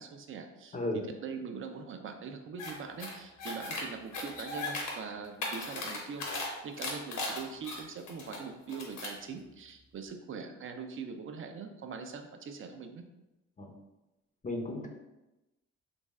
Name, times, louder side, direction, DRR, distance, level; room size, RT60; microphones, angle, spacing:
voice 1, 0.0-13.0, right 5 dB, 45° right, 6 dB, 0.5 m, -42 dB
voice 2, 0.7-1.0 13.6-13.7 14.4-14.9, left 1 dB, 25° left, 2 dB, 0.5 m, -34 dB
sound 1, 2.6-2.7 3.0-3.8 4.1-4.9 5.2-6.5 6.8-8.4 8.7-9.2, left 3 dB, 80° left, 0.9 m, -37 dB
3.9 x 3.1 x 2.3 m, 0.98 s
cardioid pair, 90°, 30 cm